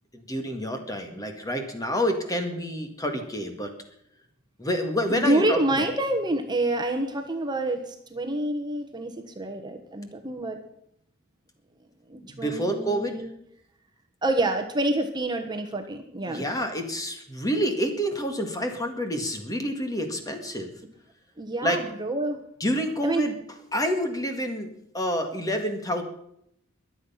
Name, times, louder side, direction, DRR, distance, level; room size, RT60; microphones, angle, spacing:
voice 1, 0.1-3.7 4.6-6.0 12.2-13.3 16.3-20.8 21.6-21.8 22.6-23.3 23.7-26.0, equal, 15° left, 5 dB, 1.8 m, -28 dB
voice 2, 5.1-10.6 12.1-13.3 14.2-16.4 21.4-22.4 23.0-23.2, right 1 dB, 20° right, 5 dB, 1.3 m, -27 dB
22.5 x 8.1 x 5.7 m, 0.73 s
head